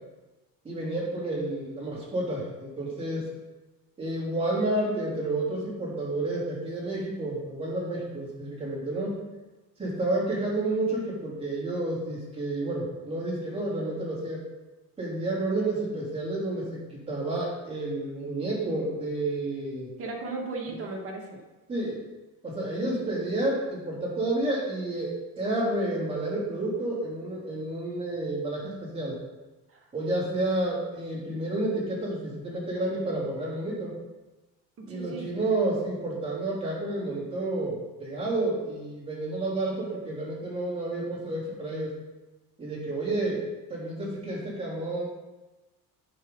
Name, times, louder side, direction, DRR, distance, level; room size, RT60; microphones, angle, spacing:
voice 1, 0.6-3.3 4.0-9.2 9.8-14.4 15.0-19.9 21.7-22.0 22.4-29.2 29.9-33.9 34.9-41.9 42.6-43.4 43.7-45.0, right 2 dB, 15° right, -6 dB, 3.2 m, -30 dB
voice 2, 20.0-21.4 29.7-29.8 34.8-35.2, right 3 dB, 40° right, 0 dB, 1.8 m, -36 dB
10.0 x 6.0 x 3.8 m, 1.1 s
cardioid pair, 140°, 35 cm